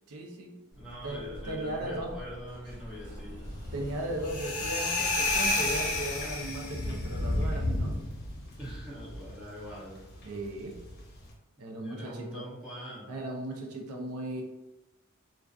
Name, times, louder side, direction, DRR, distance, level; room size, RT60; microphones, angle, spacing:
voice 1, 0.1-0.5 1.0-2.2 3.7-8.0 10.2-10.8 11.6-12.5 13.1-14.4, right 1 dB, 80° right, 2 dB, 0.5 m, -37 dB
Explosion, 0.7-9.4, equal, 55° right, 1.2 m, -47 dB
voice 2, 0.8-3.5 8.6-10.0 11.8-13.1, equal, 5° right, -8 dB, 0.6 m, -43 dB
sound 1, 3.4-11.3, left 1 dB, 45° left, 0.7 m, -37 dB
sound 2, 4.2-7.0, left 2 dB, 85° left, 0.5 m, -30 dB
2.4 x 2.3 x 2.3 m, 0.99 s
head